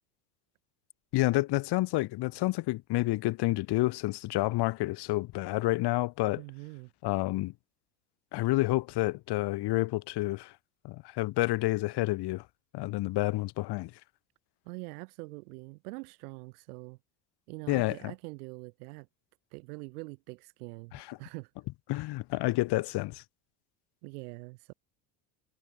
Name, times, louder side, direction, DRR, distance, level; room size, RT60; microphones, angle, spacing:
voice 1, 1.1-6.4 7.0-7.5 8.3-10.5 10.8-12.4 12.7-13.9 17.7-18.0 20.9-21.2 21.9-23.2, left 19 dB, 60° left, 4.3 m, -29 dB
voice 2, 6.4-6.9 14.6-17.0 17.5-19.1 19.5-21.5 24.0-24.7, right 27 dB, 85° right, 4.3 m, -44 dB
supercardioid pair, 120°, 44 cm